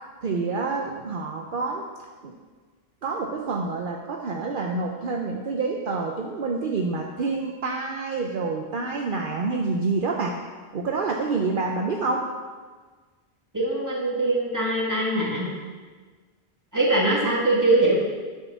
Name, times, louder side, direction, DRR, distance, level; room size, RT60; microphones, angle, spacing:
voice 1, 0.2-1.9 2.2-2.3 3.0-10.4 10.7-12.3, right 3 dB, 60° right, 1 dB, 0.9 m, -27 dB
voice 2, 13.5-15.5 16.7-17.9, right 2 dB, 20° right, -4 dB, 2.0 m, -22 dB
10.5 x 4.5 x 7.0 m, 1.4 s
omnidirectional pair, 1.0 m